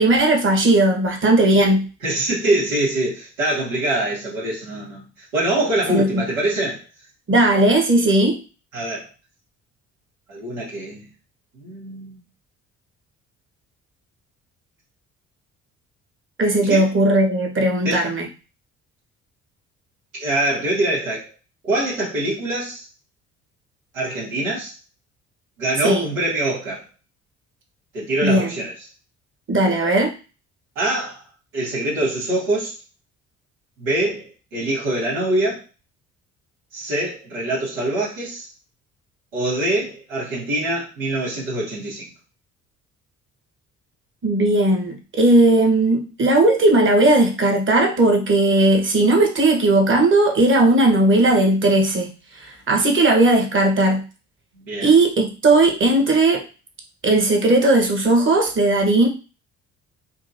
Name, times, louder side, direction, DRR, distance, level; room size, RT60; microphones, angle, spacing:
voice 1, 0.0-1.8 5.9-6.2 7.3-8.4 16.4-18.3 25.8-26.1 28.2-28.5 29.5-30.1 44.2-52.1 52.4-54.0 54.8-56.5 57.0-59.1, right 2 dB, 30° right, 2 dB, 1.2 m, -17 dB
voice 2, 2.0-6.8 8.7-9.1 10.3-11.1 11.6-12.2 16.7-16.9 17.8-18.1 20.1-21.3 21.6-22.8 23.9-24.7 25.6-26.8 27.9-28.7 30.7-31.2 31.5-32.7 33.8-35.6 36.7-38.5 39.3-42.1 54.6-54.9, right 1 dB, 80° right, -7 dB, 1.3 m, -24 dB
3.7 x 2.8 x 2.7 m, 0.33 s
figure-of-eight pair, 50°, 39 cm